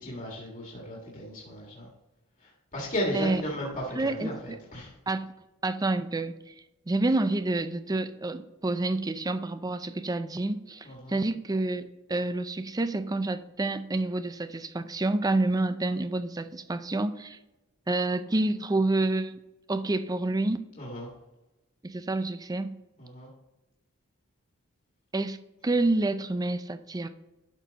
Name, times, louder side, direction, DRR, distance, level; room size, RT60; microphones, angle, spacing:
voice 1, 0.0-1.9 2.7-4.9 10.8-11.1 20.8-21.1 23.0-23.3, equal, 40° left, -3 dB, 1.8 m, -35 dB
voice 2, 3.9-4.6 5.1-5.3 5.6-6.4 6.9-17.4 17.9-19.4 19.7-20.6 21.8-22.7 25.1-25.4 25.6-27.1, right 2 dB, 20° right, 10 dB, 0.5 m, -28 dB
11.5 x 4.3 x 4.0 m, 1.0 s
head